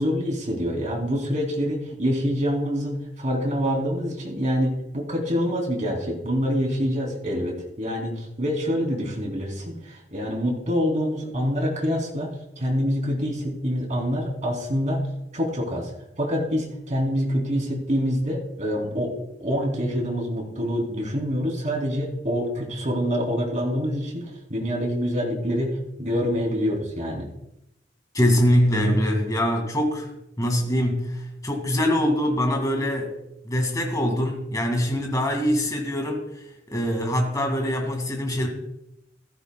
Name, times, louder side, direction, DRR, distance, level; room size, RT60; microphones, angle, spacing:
voice 1, 0.0-15.1 15.3-19.1 19.4-27.3, equal, 40° right, 0 dB, 3.0 m, -26 dB
voice 2, 28.1-30.1 30.4-33.2 33.4-36.2 36.7-38.5, equal, 20° left, 3 dB, 2.1 m, -23 dB
15.0 x 14.5 x 2.3 m, 0.84 s
head